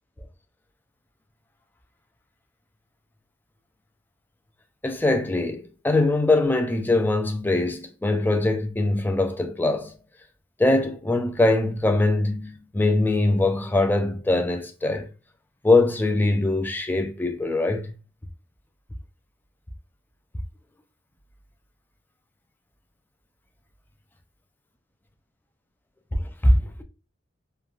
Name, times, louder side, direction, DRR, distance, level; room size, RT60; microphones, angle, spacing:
voice 1, 4.8-9.9 10.6-15.1 15.6-17.9 26.4-26.8, left 2 dB, 10° left, 0.3 m, -22 dB
3.1 x 2.2 x 2.4 m
head